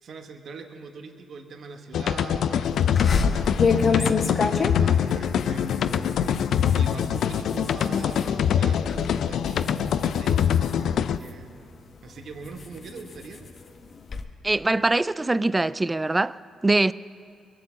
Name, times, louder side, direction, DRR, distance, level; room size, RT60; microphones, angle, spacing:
voice 1, 0.0-6.2 6.7-11.5 12.0-13.5, right 4 dB, 60° right, 1.2 m, -42 dB
sound 1, 1.9-11.2, left 8 dB, 75° left, 0.4 m, -24 dB
sound 2, 2.9-8.3 8.7-9.1 9.5-11.5 12.0-14.2, left 4 dB, 50° left, 1.0 m, -28 dB
voice 2, 14.4-16.9, right 2 dB, 20° right, 0.3 m, -23 dB
22.0 x 7.6 x 7.5 m
cardioid pair, 70°, 0 cm